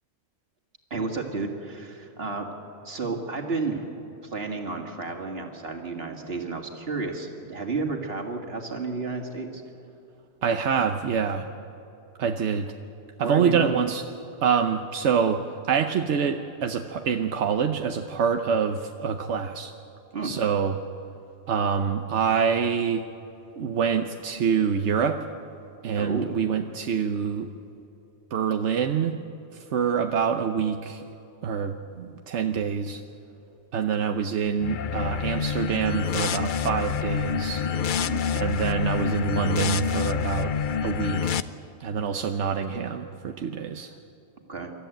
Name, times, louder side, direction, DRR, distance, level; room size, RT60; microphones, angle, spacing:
voice 1, 0.9-2.5 2.8-3.9 4.2-9.6 13.2-13.8 20.1-20.3 25.9-26.4 38.0-38.2 44.5-44.7, right 3 dB, 60° right, 3 dB, 2.3 m, -31 dB
voice 2, 10.4-11.5 12.2-12.7 13.2-14.0 14.4-19.7 20.2-20.8 21.5-23.0 23.6-25.2 25.8-27.5 28.3-29.1 29.5-31.0 31.4-33.0 33.7-37.6 38.3-40.5 40.8-41.4 41.8-43.9, right 7 dB, 90° right, 6 dB, 1.1 m, -26 dB
sound 1, 34.6-41.4, left 7 dB, 55° left, 0.7 m, -27 dB
26.0 x 13.5 x 9.1 m, 3.0 s
omnidirectional pair, 1.1 m